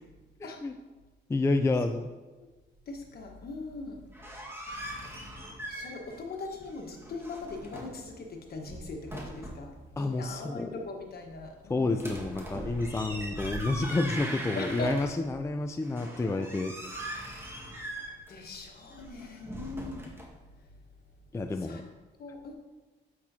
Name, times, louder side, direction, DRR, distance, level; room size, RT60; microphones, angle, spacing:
voice 1, 0.4-0.7 1.3-2.1 10.0-10.7 11.7-16.8 17.1-17.4 21.3-21.8, left 3 dB, 15° left, 6 dB, 0.3 m, -29 dB
voice 2, 2.9-4.3 5.0-5.1 5.7-12.0 12.8-12.9 14.5-15.0 17.2-17.5 18.3-20.1 20.5-20.7 21.6-21.8 22.2-22.5, left 2 dB, 50° left, 2 dB, 1.3 m, -40 dB
sound 1, 3.9-6.2 6.4-8.0 8.5-9.7 11.9-15.4 15.8-20.2, right 1 dB, 10° right, 1.7 m, -40 dB
8.5 x 6.0 x 2.8 m, 1.2 s
cardioid pair, 90°, 20 cm